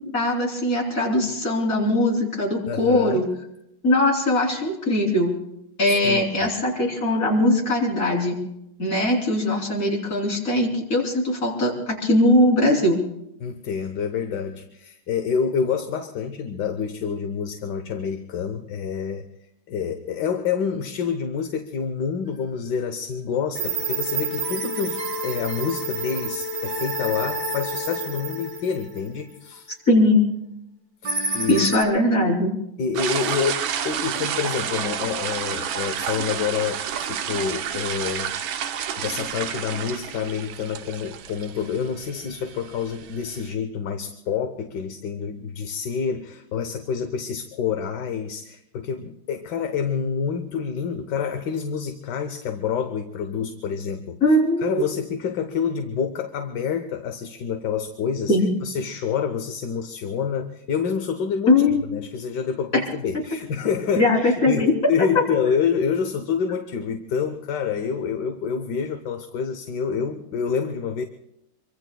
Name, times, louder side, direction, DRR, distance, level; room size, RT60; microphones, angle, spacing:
voice 1, 0.1-3.3 3.8-5.3 5.8-8.4 8.8-13.0 29.9-30.2 31.5-32.5 54.2-54.8 58.3-58.5 61.5-61.8 64.0-64.7, left 1 dB, 40° left, -1 dB, 3.9 m, -20 dB
voice 2, 2.7-3.3 6.0-6.5 13.4-19.2 19.7-29.7 31.0-31.6 32.8-38.3 39.0-54.2 54.6-58.3 58.6-71.0, left 6 dB, 65° left, 7 dB, 1.4 m, -27 dB
sound 1, 23.5-29.1 31.0-31.8, right 2 dB, 60° right, 3.2 m, -29 dB
sound 2, 32.9-43.5, right 8 dB, 75° right, 1.6 m, -30 dB
26.0 x 24.0 x 2.3 m, 0.82 s
omnidirectional pair, 2.2 m